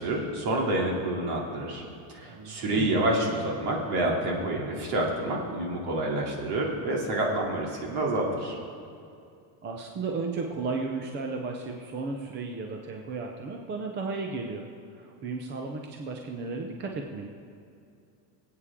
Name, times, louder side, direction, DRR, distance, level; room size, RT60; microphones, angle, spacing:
voice 1, 0.0-1.8 2.1-8.6, right 1 dB, 55° right, -1 dB, 2.8 m, -28 dB
voice 2, 2.3-3.0 9.6-14.6 14.9-17.3, right 4 dB, 25° right, 2 dB, 0.7 m, -34 dB
24.0 x 8.6 x 3.7 m, 2.5 s
cardioid pair, 165°, 46 cm